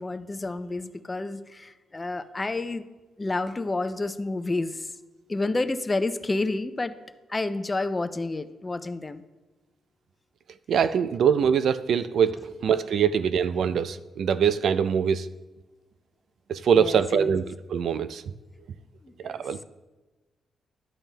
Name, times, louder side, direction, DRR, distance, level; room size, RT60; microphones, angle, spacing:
voice 1, 0.0-2.9 3.2-4.9 5.3-6.9 7.3-9.2 16.7-17.3 19.0-19.4, left 2 dB, 20° left, 10 dB, 0.4 m, -30 dB
voice 2, 10.7-15.3 16.5-17.4 17.7-18.2 19.2-19.6, right 7 dB, 70° right, 13 dB, 0.3 m, -23 dB
12.0 x 8.9 x 2.2 m, 1.2 s
cardioid pair, 115°, 0 cm